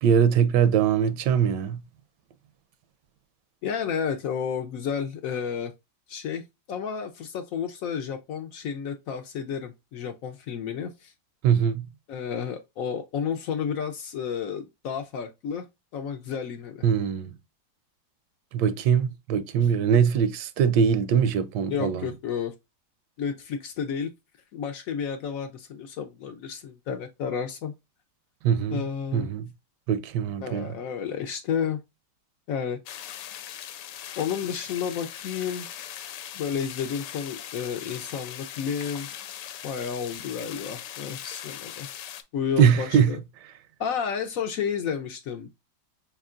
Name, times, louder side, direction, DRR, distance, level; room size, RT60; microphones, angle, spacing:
voice 1, 0.0-1.8 11.4-11.9 16.8-17.3 18.5-22.1 28.4-28.8 29.1-29.5 29.9-30.8 42.6-43.1, right 8 dB, 85° right, 1.2 m, -22 dB
voice 2, 3.6-5.7 6.1-11.1 12.1-15.6 15.9-16.8 21.7-22.5 23.2-24.1 24.5-27.7 28.7-29.3 30.4-31.8 32.5-32.8 34.2-35.7 36.3-39.1 39.6-41.9 42.3-43.2 43.8-45.5, left 7 dB, 70° left, 0.9 m, -31 dB
sound 1, 32.9-42.2, left 10 dB, 85° left, 1.2 m, -40 dB
4.4 x 3.6 x 2.4 m
omnidirectional pair, 1.8 m